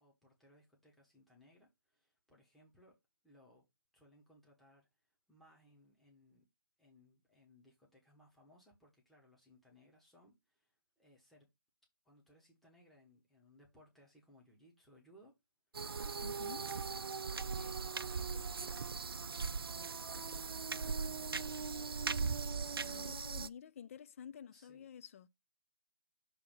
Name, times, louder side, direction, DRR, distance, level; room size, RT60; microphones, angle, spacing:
voice 1, 0.0-3.0 3.2-3.6 3.9-6.4 6.8-11.5 12.0-15.3 16.6-16.8 17.4-21.6 24.5-24.9, equal, ahead, 1.1 m, -65 dB
sound 1, 15.7-23.5, right 5 dB, 80° right, 0.4 m, -39 dB
voice 2, 16.2-16.6 22.8-25.3, left 8 dB, 35° left, 0.3 m, -51 dB
6.8 x 2.8 x 5.2 m
figure-of-eight pair, 145°, 12 cm